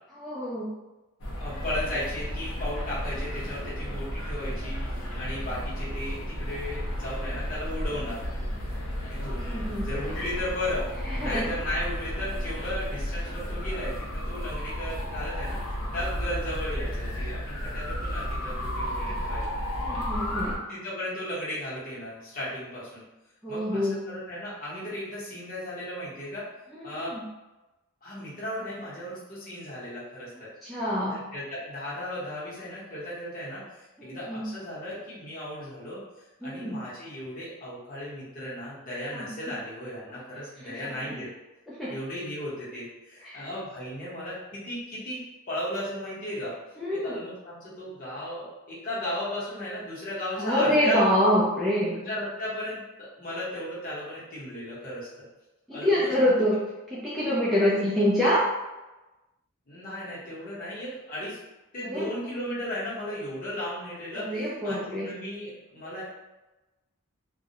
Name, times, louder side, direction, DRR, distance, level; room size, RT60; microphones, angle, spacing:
voice 1, 0.1-0.7 9.4-9.9 11.1-11.5 19.8-20.5 23.4-24.0 26.7-27.3 30.6-31.2 34.0-34.5 36.4-36.8 39.1-39.3 40.6-40.8 41.8-41.9 43.2-43.5 46.8-47.1 50.4-51.9 55.7-56.6 56.9-58.4 61.8-62.1 64.1-65.1, equal, ahead, -10 dB, 0.3 m, -26 dB
sound 1, 1.2-20.6, equal, 75° left, 0.6 m, -33 dB
voice 2, 1.4-8.3 9.1-9.4 9.8-10.8 11.2-19.5 20.7-23.0 23.5-26.5 26.8-27.2 28.0-30.5 31.1-36.0 36.4-41.3 41.9-45.2 45.5-46.5 46.9-51.0 51.9-55.2 55.7-56.3 57.6-58.1 59.7-61.4 61.7-66.0, left 1 dB, 40° left, -9 dB, 0.9 m, -35 dB
2.3 x 2.0 x 2.8 m, 1.1 s
head